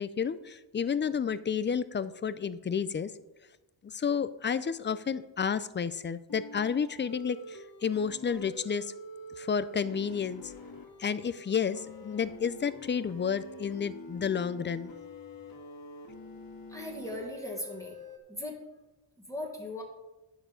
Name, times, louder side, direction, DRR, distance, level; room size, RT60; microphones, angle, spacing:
voice 1, 0.0-3.1 3.8-8.9 9.4-10.5 11.0-14.9, left 6 dB, 25° left, 14 dB, 0.4 m, -31 dB
sound 1, 6.3-18.2, left 2 dB, 45° left, 1.8 m, -46 dB
voice 2, 16.7-18.0 18.3-18.6 19.3-19.8, left 1 dB, 5° left, -1 dB, 1.7 m, -38 dB
9.8 x 7.0 x 5.1 m, 1.0 s
cardioid pair, 110°, 49 cm